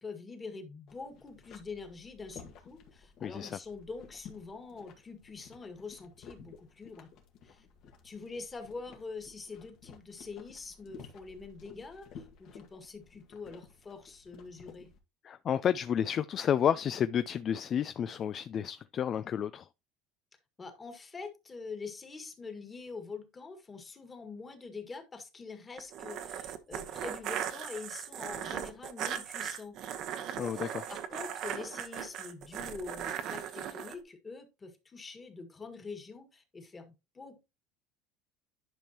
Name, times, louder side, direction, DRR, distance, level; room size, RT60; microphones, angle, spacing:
voice 1, 0.0-7.1 7.4-7.7 8.0-14.9 20.6-29.8 30.5-37.4, left 4 dB, 20° left, 1.8 m, -45 dB
sound 1, 0.9-15.0, left 6 dB, 60° left, 1.7 m, -54 dB
voice 2, 3.2-3.6 15.2-19.7 30.4-30.9, left 9 dB, 40° left, 0.3 m, -31 dB
sound 2, 25.8-33.9, right 9 dB, 55° right, 0.9 m, -38 dB
10.5 x 5.3 x 2.9 m
supercardioid pair, 115°, 0 cm